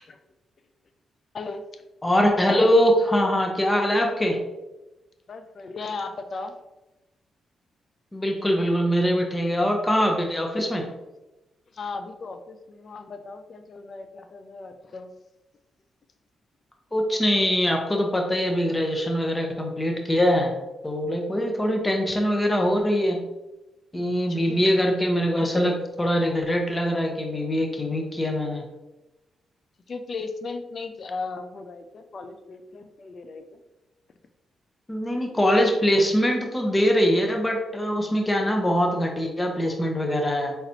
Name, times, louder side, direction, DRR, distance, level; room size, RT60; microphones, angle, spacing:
voice 1, 2.0-4.4 8.1-10.8 16.9-20.5 20.8-23.2 23.9-28.6 34.9-40.6, equal, 20° left, 2 dB, 1.0 m, -23 dB
voice 2, 5.3-6.5 11.7-15.1 24.3-24.6 29.9-33.6, left 4 dB, 55° left, 7 dB, 0.5 m, -36 dB
4.2 x 4.0 x 2.8 m, 1.0 s
hypercardioid pair, 45°, 0 cm